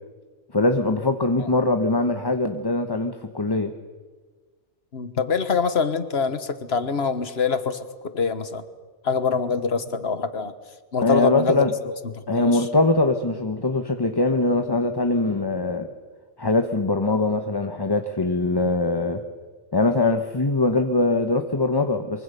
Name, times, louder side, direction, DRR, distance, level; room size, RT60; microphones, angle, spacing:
voice 1, 0.5-3.7 11.0-11.7 12.3-15.9 16.4-19.2 19.7-22.2, left 2 dB, 20° left, 6 dB, 1.0 m, -22 dB
voice 2, 4.9-7.8 8.1-8.6 9.0-10.5 10.9-11.7 12.1-12.6, left 5 dB, 65° left, 11 dB, 1.6 m, -24 dB
24.5 x 24.0 x 6.8 m, 1.4 s
omnidirectional pair, 1.1 m